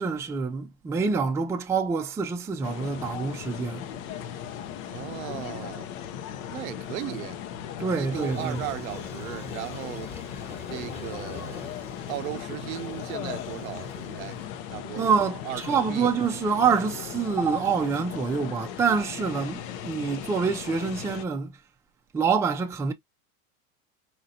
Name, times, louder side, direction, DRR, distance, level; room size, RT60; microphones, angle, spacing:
voice 1, 0.0-3.8 7.8-8.6 15.0-21.5 22.1-22.9, right 5 dB, 5° right, 0.3 m, -26 dB
sound 1, 2.6-21.3, left 9 dB, 70° left, 0.8 m, -37 dB
voice 2, 4.9-5.9 6.5-7.4 7.9-10.1 10.7-11.7 12.1-14.4 14.7-15.2 15.4-16.1, right 16 dB, 80° right, 0.6 m, -36 dB
Toilet flush, 8.1-14.5, left 3 dB, 15° left, 1.1 m, -44 dB
4.3 x 2.6 x 2.6 m
supercardioid pair, 115°, 42 cm